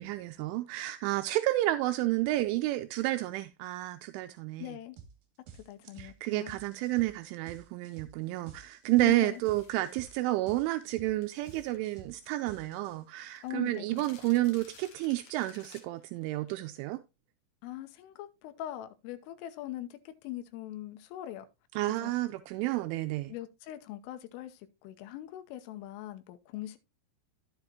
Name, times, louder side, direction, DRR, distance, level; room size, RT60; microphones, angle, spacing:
voice 1, 0.0-4.8 6.0-17.0 21.8-23.3, right 17 dB, 85° right, 3.1 m, -30 dB
voice 2, 4.6-5.0 5.7-6.5 9.0-9.4 13.4-13.9 14.2-14.3 17.6-21.5 22.0-22.1 23.3-26.8, left 13 dB, 90° left, 3.5 m, -41 dB
sound 1, 5.0-5.2 5.5-13.2, right 7 dB, 55° right, 3.4 m, -51 dB
sound 2, 9.3-10.3 11.2-12.6 12.9-13.0 13.2-16.7, left 6 dB, 55° left, 2.6 m, -57 dB
11.5 x 7.9 x 2.8 m
omnidirectional pair, 5.6 m